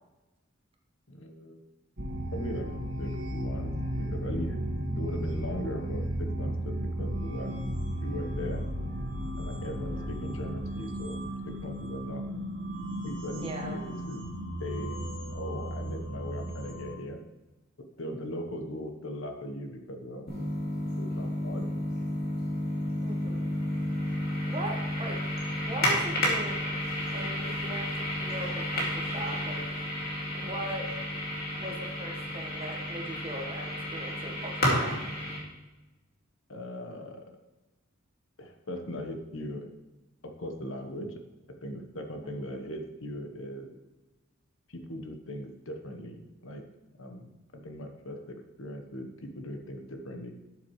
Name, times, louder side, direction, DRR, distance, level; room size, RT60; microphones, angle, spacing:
voice 1, 1.1-1.6 2.3-2.7 3.0-4.6 5.0-7.5 8.0-8.6 9.4-12.2 13.0-14.2 14.6-15.0 15.3-17.2 18.0-20.3 21.0-21.7 36.5-37.3 38.4-39.7 40.2-41.1 41.6-43.7 44.7-46.6 47.0-50.3, equal, 75° left, 5 dB, 1.1 m, -39 dB
sound 1, 2.0-17.0, right 1 dB, 60° right, 1.9 m, -34 dB
voice 2, 9.7-10.2 13.3-13.8 23.0-23.5 24.5-25.2 25.6-26.6 27.1-27.9 28.2-29.7 30.3-30.9 31.6-35.1 42.3-42.5, right 1 dB, 30° right, 1 dB, 1.4 m, -39 dB
sound 2, 20.3-35.4, left 1 dB, 50° left, 2.4 m, -31 dB
12.0 x 7.1 x 3.2 m, 1.1 s
head